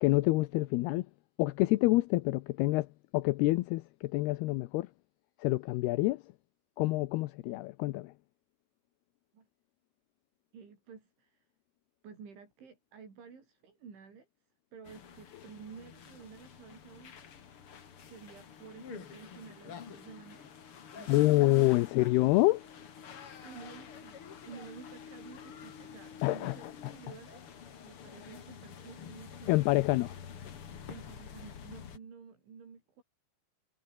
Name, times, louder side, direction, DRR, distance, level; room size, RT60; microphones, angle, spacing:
voice 1, 0.0-1.1 1.4-2.9 3.1-4.9 5.4-6.2 6.8-8.1 21.1-22.6 26.2-26.9 29.5-30.2, left 20 dB, 80° left, 2.4 m, -27 dB
voice 2, 10.5-11.5 12.0-14.3 14.7-17.3 18.1-20.5 21.0-21.3 22.0-22.2 23.0-27.4 27.9-29.7 30.9-33.0, right 6 dB, 80° right, 8.3 m, -51 dB
sound 1, 14.8-32.0, left 7 dB, 45° left, 1.8 m, -49 dB
omnidirectional pair, 5.3 m